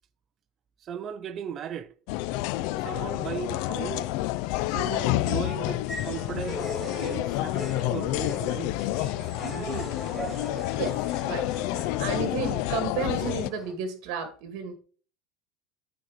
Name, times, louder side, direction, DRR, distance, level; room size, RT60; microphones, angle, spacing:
voice 1, 0.8-1.9 2.8-4.1 4.7-9.9, right 8 dB, 35° right, 0.6 m, -37 dB
sound 1, 2.1-13.5, left 16 dB, 65° left, 0.4 m, -29 dB
sound 2, 5.9-13.7, equal, 5° right, 1.9 m, -40 dB
voice 2, 10.8-14.8, right 6 dB, 60° right, 1.8 m, -33 dB
9.2 x 4.1 x 5.0 m
cardioid pair, 150°, 0 cm